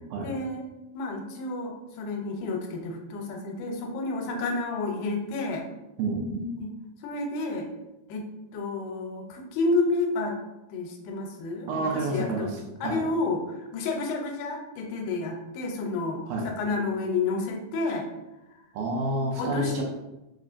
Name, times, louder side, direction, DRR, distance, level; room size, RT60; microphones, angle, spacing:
voice 1, 0.2-0.7 0.9-5.7 6.6-6.7 7.0-7.7 8.1-8.3 8.5-10.4 10.7-12.5 12.8-18.1 19.4-19.8, left 3 dB, 90° left, 2 dB, 2.4 m, -30 dB
voice 2, 6.0-6.5 11.7-13.0 16.3-16.5 18.7-19.8, right 2 dB, 80° right, 0 dB, 2.1 m, -29 dB
5.8 x 2.4 x 2.5 m, 0.97 s
omnidirectional pair, 4.2 m